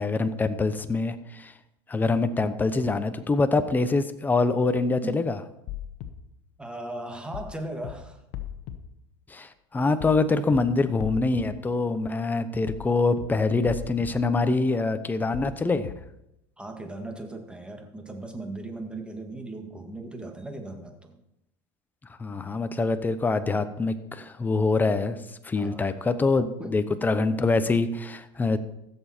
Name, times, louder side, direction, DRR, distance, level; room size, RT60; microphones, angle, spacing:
voice 1, 0.0-1.5 1.9-5.4 9.3-15.9 22.2-28.6, left 3 dB, 15° left, 11 dB, 0.8 m, -25 dB
sound 1, 5.7-6.1 7.3-7.5 7.8-7.9 8.3-8.8 10.0-10.2 10.5-10.6 11.0-11.4 12.7-12.9 13.2-13.3 13.7-14.1 15.3-15.5 15.8-15.9, left 12 dB, 65° left, 1.1 m, -36 dB
voice 2, 6.6-8.2 16.6-21.2 25.5-25.9 26.6-26.8, right 2 dB, 10° right, 4 dB, 1.9 m, -37 dB
15.5 x 7.1 x 4.4 m, 0.85 s
supercardioid pair, 105°, 11 cm